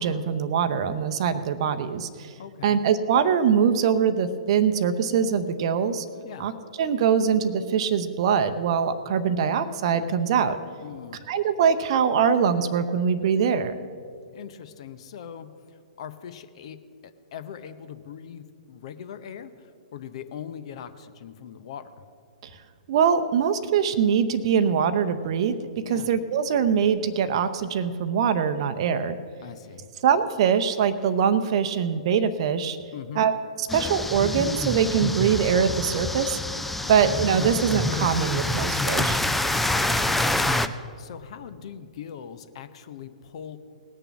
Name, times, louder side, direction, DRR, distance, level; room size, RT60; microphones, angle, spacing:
voice 1, 0.0-2.3 2.6-6.0 6.4-6.5 6.8-10.6 11.3-13.7 22.9-29.2 30.0-32.8 33.2-33.3 33.6-36.4 36.9-39.2, right 7 dB, 45° right, 10 dB, 0.7 m, -23 dB
voice 2, 2.4-2.8 6.2-6.5 10.8-11.2 14.3-21.9 25.8-26.1 29.4-29.9 32.9-33.3 36.8-37.0 39.7-40.3 40.6-43.6, left 9 dB, 50° left, 11 dB, 0.7 m, -41 dB
sound 1, 33.7-40.7, left 1 dB, 5° left, 0.4 m, -26 dB
19.0 x 6.8 x 6.0 m, 2.3 s
figure-of-eight pair, 115°, 4 cm